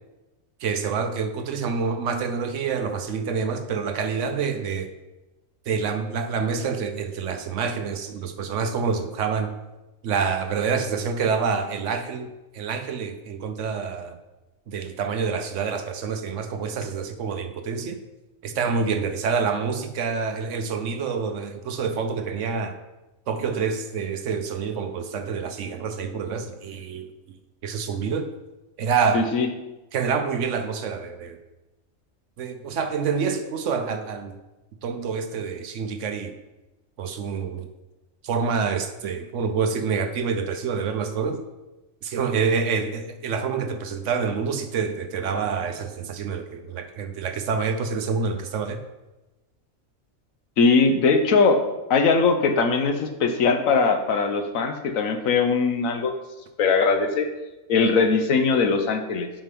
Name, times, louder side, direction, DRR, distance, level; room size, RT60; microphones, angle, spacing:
voice 1, 0.6-4.9 5.7-9.5 10.0-14.1 14.7-18.0 18.4-22.7 23.3-27.1 27.6-28.3 28.8-29.3 29.9-31.4 32.4-34.4 34.8-36.3 37.0-37.7 38.2-41.4 42.0-48.8, right 5 dB, 65° right, 8 dB, 1.0 m, -27 dB
voice 2, 29.1-29.5 50.6-51.6 51.9-56.1 56.6-57.3 57.7-59.3, left 4 dB, 75° left, 7 dB, 1.2 m, -20 dB
7.5 x 5.3 x 5.2 m, 1.0 s
omnidirectional pair, 1.4 m